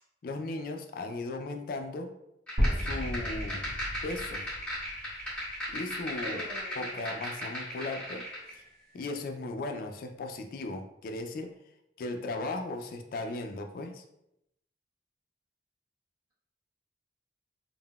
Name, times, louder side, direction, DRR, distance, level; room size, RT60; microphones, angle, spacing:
voice 1, 0.2-2.1 2.7-3.7 4.0-4.4 5.7-6.4 6.8-8.3 8.5-8.6 8.9-11.5 12.0-14.0, left 2 dB, 55° left, 5 dB, 0.3 m, -37 dB
sound 1, 2.5-8.5, equal, 5° left, 1.5 m, -37 dB
sound 2, 2.6-6.5, equal, 70° right, 0.9 m, -34 dB
voice 2, 6.2-7.2, equal, 25° right, -8 dB, 1.1 m, -43 dB
3.6 x 2.0 x 2.3 m, 0.81 s
head